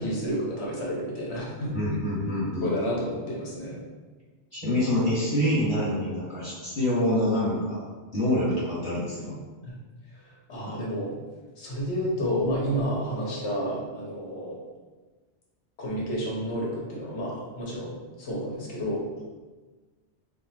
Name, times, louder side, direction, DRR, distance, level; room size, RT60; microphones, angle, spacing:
voice 1, 0.0-1.7 2.6-3.8 9.6-9.7 10.2-11.1 11.6-14.6 15.8-19.1, equal, 75° left, -4 dB, 1.3 m, -30 dB
voice 2, 1.7-2.7 4.5-7.8 8.1-9.4, left 1 dB, 25° left, -11 dB, 1.5 m, -26 dB
3.5 x 2.2 x 4.1 m, 1.3 s
omnidirectional pair, 1.1 m